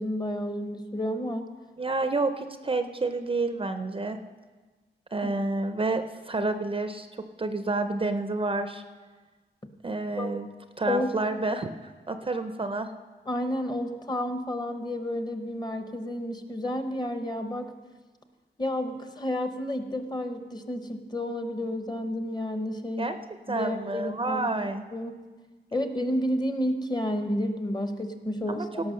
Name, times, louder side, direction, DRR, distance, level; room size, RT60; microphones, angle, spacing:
voice 1, 0.0-1.5 5.2-5.3 10.2-10.3 10.9-11.1 13.3-17.7 18.6-23.1 23.5-24.5 24.9-25.2 25.7-28.9, left 1 dB, 20° left, 8 dB, 0.8 m, -31 dB
voice 2, 1.8-4.2 5.1-7.1 7.4-8.8 9.8-10.5 10.8-12.9 23.0-23.2 23.5-24.8 28.5-28.7, right 3 dB, 30° right, 8 dB, 0.5 m, -29 dB
17.0 x 6.0 x 6.3 m, 1.3 s
wide cardioid pair, 170°, 19 cm